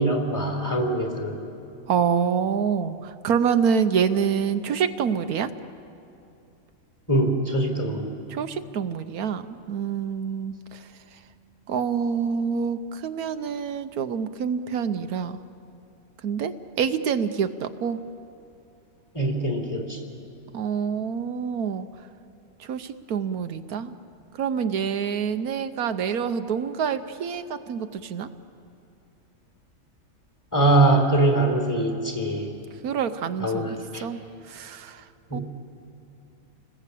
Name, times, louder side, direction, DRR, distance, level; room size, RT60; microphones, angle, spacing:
voice 1, 0.0-1.4 7.1-8.1 19.1-20.0 30.5-32.5 33.4-34.0 35.3-35.4, right 2 dB, 10° left, 2 dB, 3.6 m, -22 dB
voice 2, 1.9-5.5 8.3-11.2 11.7-15.4 16.2-18.0 20.5-21.9 22.6-23.9 24.3-28.3 32.8-34.2 34.4-35.1 35.3-35.4, right 7 dB, 80° right, 9 dB, 1.3 m, -27 dB
30.0 x 20.0 x 8.4 m, 2.6 s
omnidirectional pair, 1.5 m